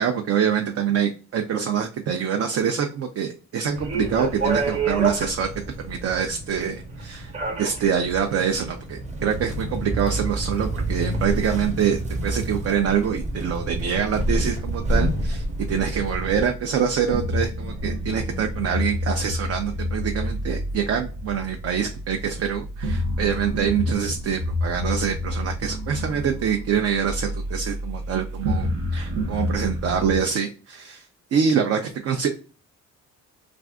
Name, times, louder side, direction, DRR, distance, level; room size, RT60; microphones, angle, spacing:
voice 1, 0.0-5.5 5.8-7.3 7.6-31.0 31.3-32.3, right 7 dB, 50° right, 4 dB, 0.5 m, -25 dB
sound 1, 3.7-16.4, right 2 dB, 25° right, 0.8 m, -28 dB
sound 2, 15.4-30.2, left 1 dB, 85° right, 0.9 m, -29 dB
2.5 x 2.4 x 3.4 m, 0.36 s
cardioid pair, 90°, 30 cm